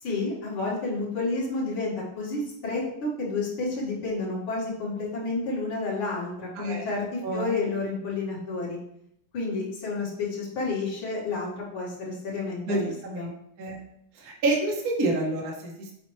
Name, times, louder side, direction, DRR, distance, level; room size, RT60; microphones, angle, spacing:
voice 1, 0.0-8.8 9.3-13.3, left 3 dB, 85° left, -6 dB, 2.5 m, -30 dB
voice 2, 6.6-6.9 7.2-7.5 12.7-12.8 13.0-13.3 13.6-13.8 14.2-15.9, right 2 dB, 50° right, -1 dB, 1.5 m, -28 dB
7.4 x 4.3 x 3.1 m, 0.74 s
omnidirectional pair, 2.2 m